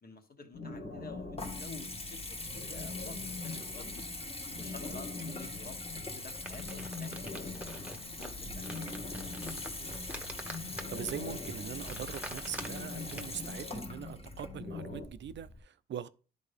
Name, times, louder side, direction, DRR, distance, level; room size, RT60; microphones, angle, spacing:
voice 1, 0.0-4.1 4.6-8.8, left 4 dB, 45° left, 1.4 m, -51 dB
sound 1, 0.5-15.1, left 3 dB, 65° left, 2.0 m, -44 dB
Water tap faucet / Bathtub (filling or washing) / Trickle dribble, 0.7-15.6, left 2 dB, 30° left, 1.5 m, -43 dB
sound 2, 6.1-13.5, right 1 dB, 5° right, 1.1 m, -46 dB
voice 2, 10.4-16.1, right 9 dB, 60° right, 0.5 m, -42 dB
11.0 x 4.0 x 3.5 m
cardioid pair, 90°, 21 cm